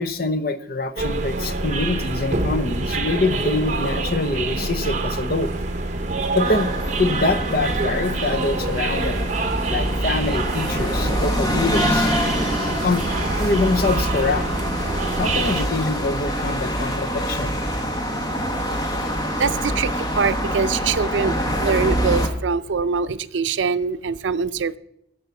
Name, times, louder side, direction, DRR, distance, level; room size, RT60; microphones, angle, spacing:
voice 1, 0.0-5.5 6.3-6.7 7.0-9.3 9.7-12.1 12.8-13.0 13.4-14.5 15.2-17.6, left 3 dB, 55° left, 12 dB, 0.7 m, -24 dB
sound 1, 1.0-15.6, right 2 dB, 40° right, 0.9 m, -26 dB
sound 2, 6.4-22.3, equal, 20° left, 1.3 m, -25 dB
voice 2, 19.4-24.8, right 5 dB, 85° right, 14 dB, 0.5 m, -23 dB
15.0 x 5.5 x 6.9 m, 0.78 s
head